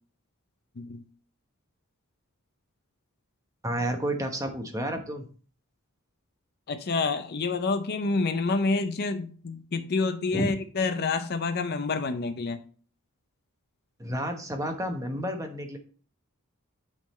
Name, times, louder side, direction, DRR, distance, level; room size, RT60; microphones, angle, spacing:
voice 1, 3.6-5.3 10.3-10.5 14.0-15.8, right 1 dB, 15° right, 4 dB, 1.0 m, -31 dB
voice 2, 6.7-12.6, left 3 dB, 45° left, 9 dB, 0.5 m, -28 dB
9.0 x 3.8 x 4.2 m, 0.41 s
head